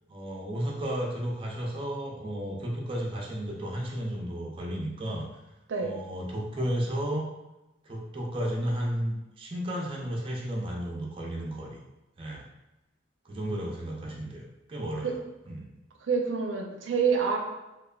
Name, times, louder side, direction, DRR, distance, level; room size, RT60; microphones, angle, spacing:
voice 1, 0.1-5.3 5.8-7.3 7.8-11.8 12.2-12.5 13.2-15.2 15.5-15.7, equal, 30° right, -3 dB, 0.5 m, -33 dB
voice 2, 16.0-17.4, right 5 dB, 90° right, 1 dB, 0.4 m, -27 dB
3.2 x 2.1 x 2.3 m, 0.99 s
head